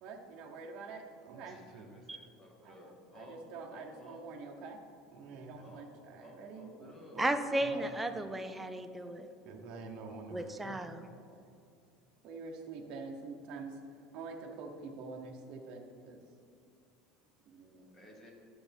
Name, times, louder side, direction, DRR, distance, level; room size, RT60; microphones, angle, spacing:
voice 1, 0.0-2.1 2.6-4.8 5.1-7.2 7.6-8.2 9.4-10.9 11.2-11.5 12.2-13.8 14.1-16.2 17.5-17.9, right 4 dB, 40° right, 1 dB, 1.0 m, -47 dB
voice 2, 1.5-3.4 3.7-4.2 5.6-5.9 6.2-7.2 17.9-18.3, left 1 dB, 15° left, -1 dB, 1.3 m, -55 dB
voice 3, 7.2-9.3 10.3-11.1, right 1 dB, 5° right, 6 dB, 0.3 m, -34 dB
11.5 x 7.0 x 3.5 m, 2.5 s
cardioid pair, 175°, 2 cm